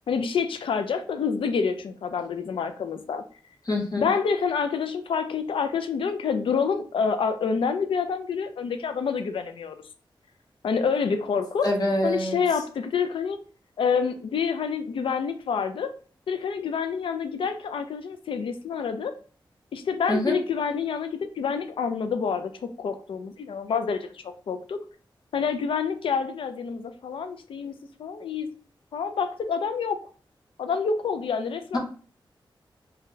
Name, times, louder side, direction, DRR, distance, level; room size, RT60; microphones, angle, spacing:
voice 1, 0.1-3.2 4.0-9.8 10.6-11.7 12.0-13.4 13.8-15.9 16.3-19.1 19.7-24.8 25.3-27.7 28.0-28.5 28.9-30.0 30.6-31.8, left 6 dB, 85° left, 9 dB, 0.4 m, -27 dB
voice 2, 3.7-4.1 11.6-12.4 20.1-20.3 31.7-31.8, left 1 dB, 50° left, 1 dB, 0.9 m, -25 dB
2.7 x 2.1 x 3.6 m, 0.41 s
wide cardioid pair, 95°, 9 cm